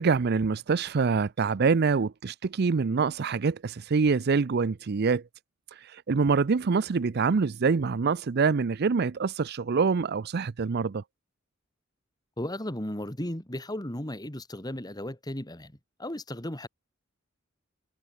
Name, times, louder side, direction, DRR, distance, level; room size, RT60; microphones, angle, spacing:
voice 1, 0.0-5.2 5.8-11.0, right 5 dB, 55° right, 0.5 m, -25 dB
voice 2, 12.4-16.7, left 1 dB, 20° left, 3.0 m, -35 dB
head